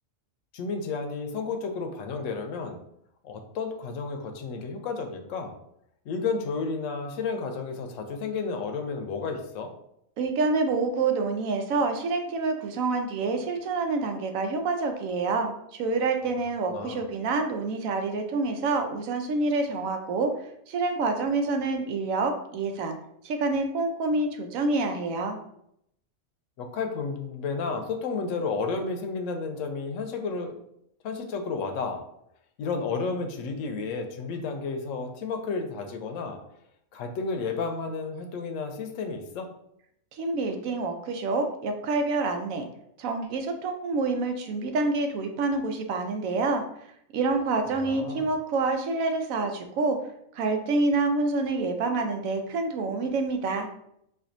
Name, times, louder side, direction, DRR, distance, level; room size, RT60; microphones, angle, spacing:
voice 1, 0.5-2.8 3.2-5.6 6.1-9.7 16.7-17.0 26.6-30.5 31.0-32.0 32.6-36.4 36.9-39.5 47.7-48.3, left 4 dB, 75° left, 4 dB, 0.9 m, -32 dB
voice 2, 10.2-20.3 20.7-23.0 23.2-25.4 40.1-42.7 43.0-46.6 47.1-50.0 50.3-53.7, right 3 dB, 80° right, 5 dB, 1.0 m, -27 dB
4.3 x 2.6 x 2.6 m, 0.74 s
omnidirectional pair, 1.4 m